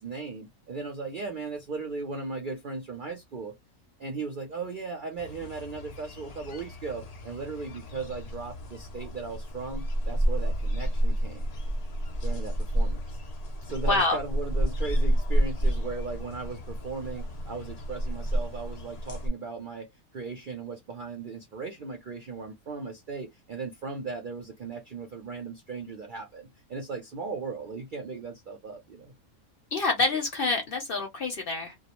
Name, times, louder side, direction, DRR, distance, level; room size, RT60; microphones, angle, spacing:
voice 1, 0.0-3.5 4.0-11.5 12.2-13.2 13.6-29.1, right 4 dB, 60° right, 0.5 m, -37 dB
sound 1, 5.2-19.3, equal, 75° left, 0.3 m, -30 dB
voice 2, 13.9-14.2 29.7-31.8, left 3 dB, 55° left, 0.7 m, -27 dB
2.3 x 2.0 x 2.8 m
omnidirectional pair, 1.5 m